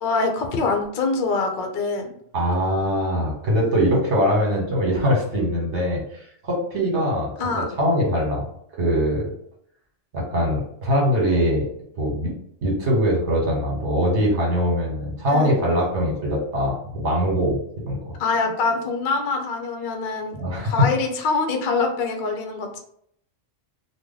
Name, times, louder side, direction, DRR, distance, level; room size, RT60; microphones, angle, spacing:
voice 1, 0.0-2.1 7.4-7.7 15.3-15.5 18.2-20.4 20.6-22.8, left 4 dB, 55° left, 3 dB, 0.6 m, -24 dB
voice 2, 2.3-8.5 8.7-9.2 10.1-11.7 12.0-12.3 12.6-17.6 17.8-18.0 20.3-20.7, equal, 65° right, -1 dB, 1.4 m, -22 dB
2.9 x 2.2 x 3.7 m, 0.68 s
omnidirectional pair, 1.3 m